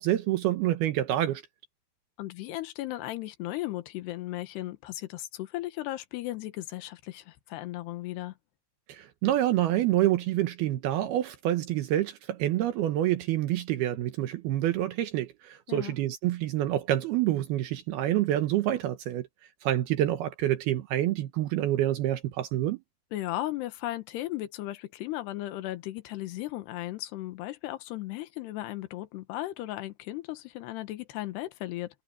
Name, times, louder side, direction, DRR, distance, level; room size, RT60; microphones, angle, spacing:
voice 1, 0.0-1.4 8.9-19.3 19.6-22.8, right 13 dB, 75° right, 2.9 m, -27 dB
voice 2, 2.2-8.3 15.7-15.9 23.1-31.9, left 16 dB, 80° left, 3.3 m, -36 dB
omnidirectional pair, 4.7 m